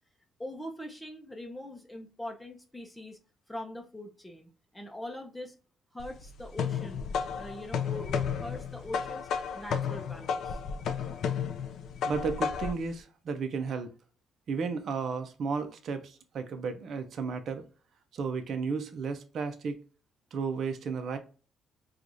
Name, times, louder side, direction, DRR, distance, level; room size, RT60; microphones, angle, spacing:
voice 1, 0.4-3.2 3.5-5.6 5.9-7.0 7.3-9.3 9.5-10.6, left 1 dB, 10° left, 0.7 m, -42 dB
sound 1, 6.0-12.9, left 7 dB, 75° left, 0.4 m, -33 dB
voice 2, 12.0-13.9 14.5-17.6 18.1-19.8 20.3-21.2, right 5 dB, 60° right, 0.6 m, -33 dB
4.6 x 2.4 x 2.6 m
cardioid pair, 90°, 0 cm